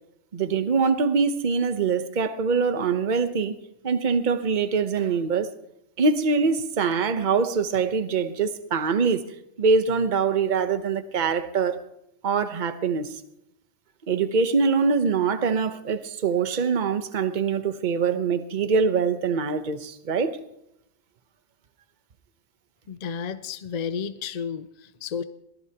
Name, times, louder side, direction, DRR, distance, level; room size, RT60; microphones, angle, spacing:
voice 1, 0.3-3.6 3.8-5.5 6.0-9.3 9.6-11.8 12.2-13.2 14.1-20.3, right 5 dB, 45° right, 1.0 m, -23 dB
voice 2, 22.9-25.2, left 7 dB, 45° left, 0.6 m, -32 dB
23.5 x 17.5 x 2.9 m
omnidirectional pair, 1.2 m